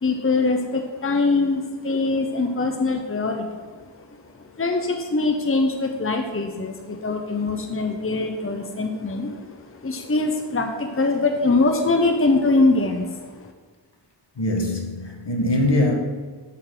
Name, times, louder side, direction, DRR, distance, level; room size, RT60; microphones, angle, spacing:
voice 1, 0.0-3.6 4.6-13.5, left 3 dB, 30° left, 0.8 m, -23 dB
voice 2, 14.4-15.9, left 1 dB, 70° left, 1.4 m, -22 dB
11.5 x 6.1 x 3.9 m
wide cardioid pair, 60°, 44 cm